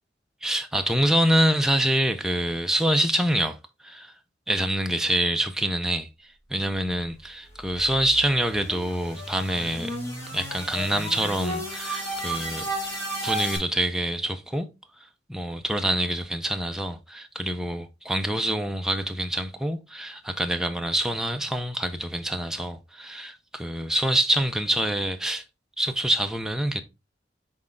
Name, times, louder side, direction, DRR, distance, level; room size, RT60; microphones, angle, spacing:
voice 1, 0.4-3.6 3.8-4.1 4.5-6.1 6.5-10.0 10.3-12.7 13.2-14.7 15.3-25.4 25.8-26.8, right 1 dB, 5° right, 0.5 m, -26 dB
sound 1, 7.2-13.6, right 1 dB, 15° left, 2.6 m, -34 dB
6.1 x 4.3 x 3.7 m
head